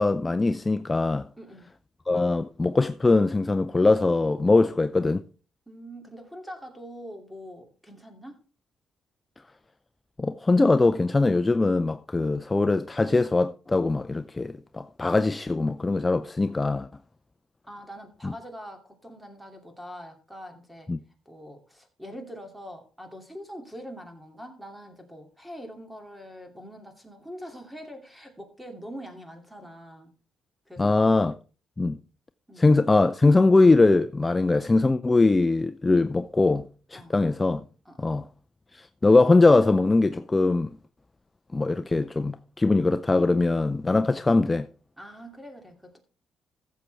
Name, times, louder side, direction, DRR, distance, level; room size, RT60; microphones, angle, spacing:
voice 1, 0.0-1.3 2.1-5.2 10.2-16.9 18.2-18.3 20.9-21.0 30.8-31.4 31.8-32.0 32.6-37.6 38.0-38.3 38.7-40.8 41.5-44.7, left 3 dB, 20° left, 0.5 m, -22 dB
voice 2, 1.4-1.7 4.7-4.8 5.7-8.4 17.7-20.9 21.3-30.1 30.7-31.0 32.5-32.8 36.9-37.2 37.8-38.2 44.1-44.2 45.0-46.0, equal, 5° right, 2.7 m, -43 dB
15.0 x 7.5 x 3.4 m
cardioid pair, 90°, 0 cm